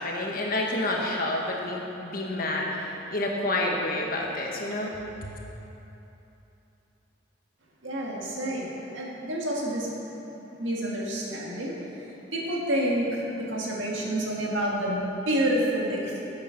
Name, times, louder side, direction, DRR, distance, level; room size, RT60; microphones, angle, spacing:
voice 1, 0.0-5.3, left 1 dB, 50° left, -1 dB, 1.3 m, -29 dB
voice 2, 7.8-9.9 10.6-11.7 12.3-16.2, right 1 dB, 90° right, -3 dB, 1.9 m, -28 dB
8.7 x 8.1 x 5.8 m, 3.0 s
head